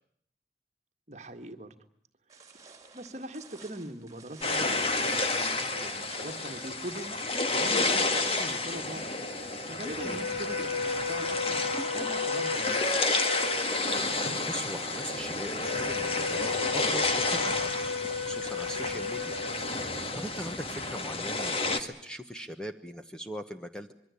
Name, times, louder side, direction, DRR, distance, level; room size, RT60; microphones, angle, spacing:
voice 1, 1.1-1.7 2.3-2.4 2.9-12.9, right 1 dB, 40° right, 8 dB, 1.8 m, -42 dB
sound 1, 2.3-7.3, right 4 dB, 20° right, 3.4 m, -53 dB
sound 2, 4.4-21.8, left 3 dB, 30° left, 1.8 m, -30 dB
sound 3, 9.8-20.2, left 4 dB, 60° left, 2.1 m, -35 dB
voice 2, 14.1-17.7 18.3-19.4 19.9-23.9, equal, 5° left, 6 dB, 1.1 m, -40 dB
25.5 x 22.5 x 8.4 m, 0.68 s
head